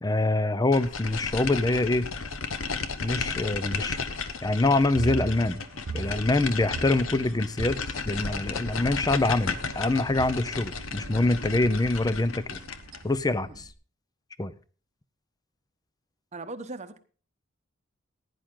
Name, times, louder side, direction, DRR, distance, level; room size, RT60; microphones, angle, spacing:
voice 1, 0.0-2.1 3.0-4.0 4.4-5.6 5.9-7.8 8.1-12.6 13.0-13.6 14.4-14.5, left 2 dB, 20° left, 0.6 m, -25 dB
sound 1, 0.7-13.1, left 5 dB, 80° left, 1.1 m, -34 dB
sound 2, 4.9-13.7, right 3 dB, 90° right, 0.9 m, -41 dB
voice 2, 16.3-17.0, right 2 dB, 35° right, 0.9 m, -39 dB
16.0 x 10.0 x 3.8 m
head